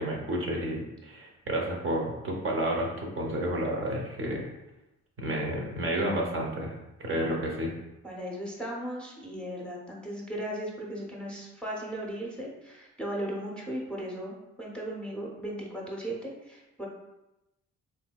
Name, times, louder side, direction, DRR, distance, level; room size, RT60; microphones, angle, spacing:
voice 1, 0.0-4.5 5.2-6.7 7.0-7.7, right 1 dB, 45° right, -1 dB, 0.7 m, -30 dB
voice 2, 8.0-16.9, right 1 dB, 5° left, -4 dB, 0.7 m, -37 dB
3.6 x 2.7 x 2.2 m, 0.95 s
cardioid pair, 90°, 30 cm